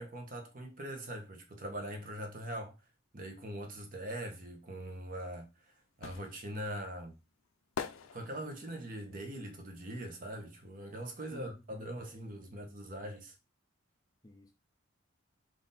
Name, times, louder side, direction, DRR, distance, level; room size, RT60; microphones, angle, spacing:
voice 1, 0.0-2.7 3.1-7.2 8.1-13.3, right 1 dB, 40° right, 0.9 m, -42 dB
sound 1, 5.1-11.0 11.3-12.9 13.1-13.2, left 6 dB, 80° left, 0.4 m, -46 dB
voice 2, 11.3-13.0 14.2-14.5, left 1 dB, 20° left, 0.6 m, -55 dB
3.7 x 2.7 x 4.0 m
head